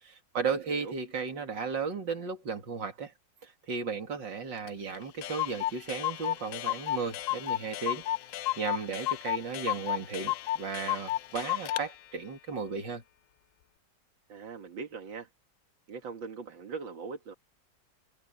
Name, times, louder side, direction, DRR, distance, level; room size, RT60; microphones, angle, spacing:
voice 1, 0.0-3.1 3.4-8.0 8.3-13.0, right 5 dB, 75° right, 3.2 m, -35 dB
voice 2, 0.5-0.9 14.3-15.3 15.9-17.3, right 5 dB, 90° right, 2.5 m, -41 dB
Clock, 4.7-4.8 4.9-5.0 5.2-11.9, left 15 dB, 90° left, 0.7 m, -33 dB
omnidirectional pair, 2.0 m